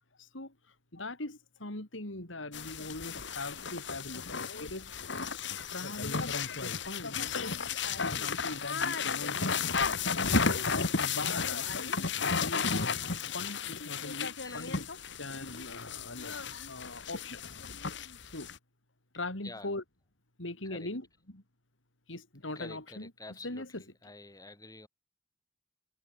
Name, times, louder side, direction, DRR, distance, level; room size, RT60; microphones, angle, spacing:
voice 1, 0.2-0.5 0.9-5.2 5.7-7.6 8.0-10.6 11.0-12.8 13.3-14.9 15.2-17.4 18.2-18.5 19.1-19.8 20.4-21.0 21.3-21.4 22.1-23.1 23.4-23.8, left 2 dB, 90° left, 4.5 m, -41 dB
sound 1, 2.5-18.6, left 5 dB, 65° left, 2.4 m, -33 dB
voice 2, 14.4-14.8 19.4-19.7 20.6-20.9 22.5-24.9, left 2 dB, 20° left, 4.9 m, -49 dB
head